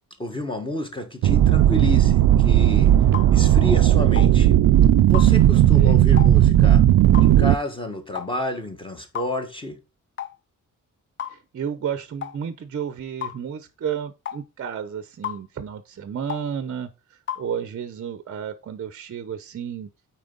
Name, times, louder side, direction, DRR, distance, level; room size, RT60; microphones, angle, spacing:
voice 1, 0.2-2.9 3.3-4.6 5.0-6.8 7.2-9.8, left 1 dB, 15° left, 1.4 m, -30 dB
engine hum, 1.2-7.5, right 12 dB, 85° right, 0.5 m, -15 dB
sound 1, 3.1-3.3 4.1-4.3 5.1-5.3 6.2-6.3 7.1-7.3 8.1-8.3 9.1-9.3 10.2-10.4 11.2-11.4 12.2-12.4 13.2-13.4 14.2-14.4 15.2-15.4 16.3-16.5 17.3-17.5, left 10 dB, 40° left, 0.4 m, -32 dB
voice 2, 5.5-6.0 11.3-19.9, right 8 dB, 45° right, 0.6 m, -32 dB
8.8 x 4.5 x 3.9 m
wide cardioid pair, 170°, 33 cm